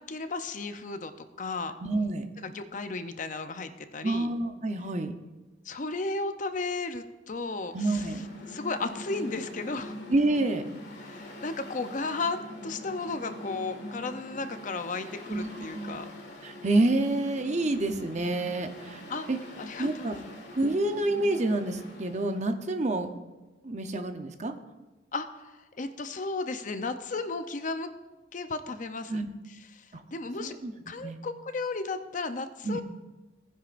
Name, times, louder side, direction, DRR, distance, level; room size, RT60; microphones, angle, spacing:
voice 1, 0.0-1.7 2.4-4.3 5.7-8.1 8.5-10.0 11.0-16.1 19.1-19.3 19.6-20.1 25.1-27.9 28.3-29.2 29.7-29.8 30.1-30.5 30.9-32.8, left 3 dB, 45° left, 9 dB, 0.6 m, -34 dB
voice 2, 1.8-2.2 4.0-5.1 7.7-8.2 10.1-10.7 15.3-16.0 16.4-19.0 19.3-19.4 19.8-20.2 20.5-23.1 23.6-24.5 29.1-29.3 29.9-30.0 30.4-30.7 31.0-31.2 32.6-32.8, right 2 dB, 40° right, 7 dB, 0.7 m, -28 dB
Mechanical fan, 7.6-22.4, left 1 dB, 65° left, 1.8 m, -43 dB
17.5 x 10.0 x 2.5 m, 1.1 s
head